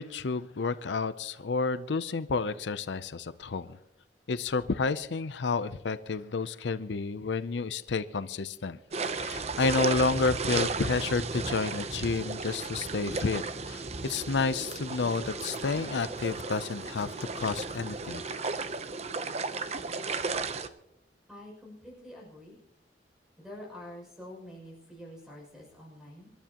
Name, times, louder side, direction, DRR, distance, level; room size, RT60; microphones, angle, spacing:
voice 1, 0.0-3.8 4.3-8.8 9.1-18.2, left 4 dB, 85° left, 14 dB, 0.6 m, -30 dB
sound 1, 8.9-20.7, right 4 dB, 40° right, 0.7 m, -34 dB
voice 2, 21.3-22.6 23.4-26.3, left 1 dB, 5° right, -2 dB, 6.5 m, -47 dB
26.5 x 12.5 x 3.0 m, 0.80 s
head